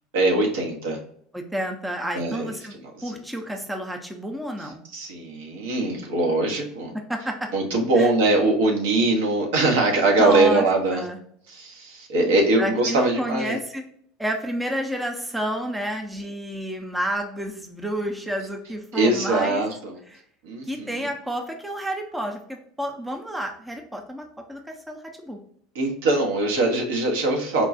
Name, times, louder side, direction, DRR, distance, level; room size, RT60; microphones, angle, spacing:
voice 1, 0.1-1.0 2.1-2.5 3.0-3.2 4.9-6.9 7.5-11.0 11.5-13.6 18.9-20.0 20.4-21.1 25.7-27.7, right 2 dB, 65° right, 1 dB, 0.9 m, -22 dB
voice 2, 1.3-2.7 3.0-4.8 6.9-7.5 8.0-8.1 10.2-10.7 10.9-11.2 12.6-13.8 14.2-19.6 20.1-20.2 20.7-25.4, equal, 5° right, 3 dB, 0.6 m, -30 dB
4.4 x 2.3 x 2.6 m, 0.66 s
figure-of-eight pair, 75°, 0 cm